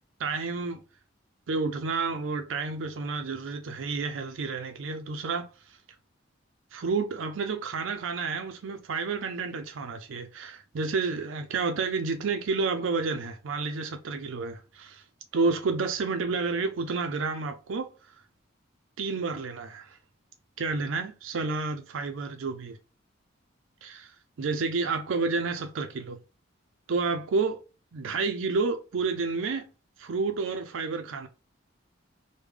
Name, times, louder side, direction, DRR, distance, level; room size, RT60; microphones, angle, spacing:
voice 1, 0.2-0.8 1.5-5.8 6.7-15.0 15.3-17.9 19.0-20.0 20.6-22.8 23.8-26.2 26.9-27.6 27.9-29.7 30.0-31.3, right 4 dB, 75° right, 0.4 m, -30 dB
3.2 x 2.1 x 3.4 m
head